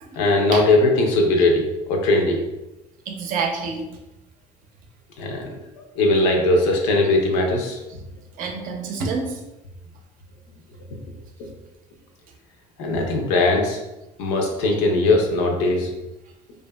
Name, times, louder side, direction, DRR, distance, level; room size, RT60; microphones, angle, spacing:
voice 1, 0.2-2.4 5.2-5.5 6.0-7.8 10.9-11.0 12.8-13.8 14.2-15.9, left 2 dB, 80° left, 1 dB, 0.6 m, -19 dB
voice 2, 3.1-3.9 8.4-9.4, right 4 dB, 60° right, 3 dB, 0.6 m, -28 dB
2.6 x 2.4 x 2.2 m, 0.99 s
supercardioid pair, 85°, 16 cm